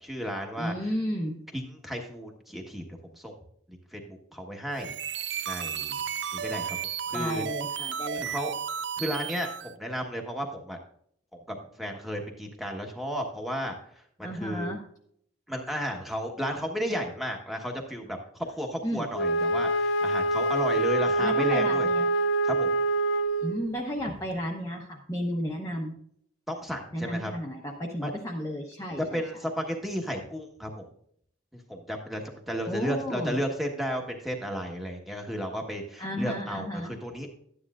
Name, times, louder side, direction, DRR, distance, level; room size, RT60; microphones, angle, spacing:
voice 1, 0.0-0.7 1.5-2.8 3.1-3.3 3.9-6.0 6.3-6.8 7.1-7.4 8.2-8.5 9.0-10.8 11.5-13.8 14.2-14.7 15.5-21.9 22.4-22.8 26.5-27.3 28.0-28.1 29.1-30.8 31.7-37.3, equal, ahead, 1 dB, 1.3 m, -33 dB
voice 2, 0.6-1.3 7.1-8.5 14.2-14.8 18.8-19.1 21.2-22.1 23.4-25.9 26.9-29.2 32.6-33.4 36.0-36.9, equal, 15° left, -2 dB, 0.9 m, -33 dB
sound 1, 4.7-9.7, right 8 dB, 65° right, 0.4 m, -33 dB
Wind instrument woodwind instrument, 19.1-23.7, right 1 dB, 80° left, 0.6 m, -25 dB
12.5 x 9.8 x 2.5 m, 0.65 s
head